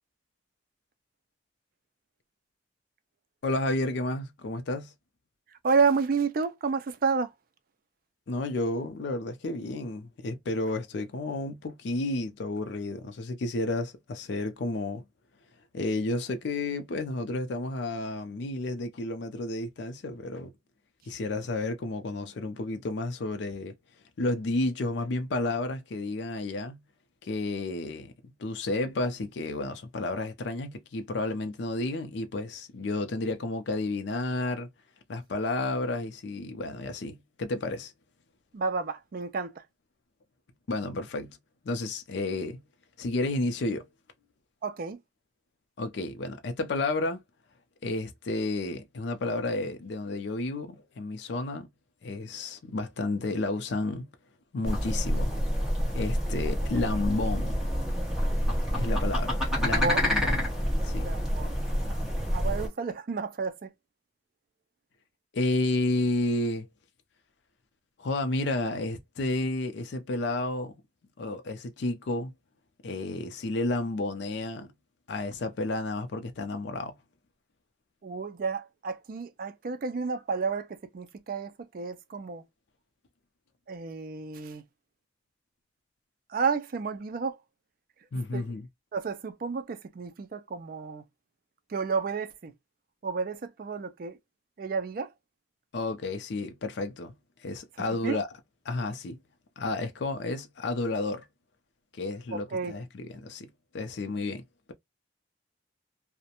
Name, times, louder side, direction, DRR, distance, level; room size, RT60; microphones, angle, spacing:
voice 1, 3.4-4.9 8.3-15.0 15.7-20.5 21.1-23.7 24.2-26.8 27.2-28.1 28.4-34.7 35.1-37.9 40.7-41.4 41.6-42.6 43.0-43.9 45.8-47.2 47.8-51.7 52.0-54.1 54.5-55.3 55.9-57.6 58.7-60.4 60.8-61.1 65.3-66.7 68.0-70.7 71.2-72.3 72.8-74.7 75.1-76.9 88.1-88.7 95.7-97.1 97.4-98.3 98.7-99.2 99.6-101.3 102.0-103.5 103.7-104.4, left 2 dB, 65° left, 0.4 m, -31 dB
voice 2, 5.6-7.3 38.5-39.6 44.6-45.0 59.7-60.1 61.0-61.6 62.3-63.7 78.0-82.4 83.7-84.6 86.3-87.4 88.3-88.5 88.9-91.0 91.7-92.5 93.0-94.2 94.6-95.1 98.0-98.2 102.3-102.7, right 5 dB, 50° right, 0.4 m, -31 dB
sound 1, 54.6-62.7, equal, ahead, 1.0 m, -28 dB
2.4 x 2.1 x 2.8 m
head